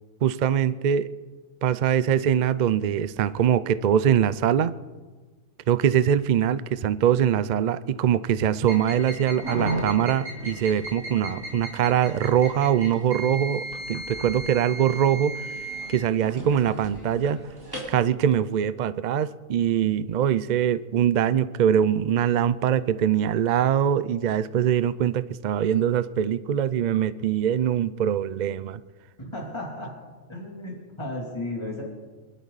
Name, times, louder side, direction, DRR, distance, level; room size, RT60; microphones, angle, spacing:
voice 1, 0.2-1.1 1.6-4.7 5.7-15.3 15.9-17.4 17.9-28.8, right 9 dB, 75° right, 15 dB, 0.4 m, -23 dB
sound 1, 8.6-18.0, right 1 dB, 15° right, 4.3 m, -35 dB
voice 2, 29.2-29.9 30.3-31.8, left 1 dB, 20° left, -3 dB, 3.1 m, -34 dB
27.0 x 11.5 x 4.1 m, 1.3 s
omnidirectional pair, 1.4 m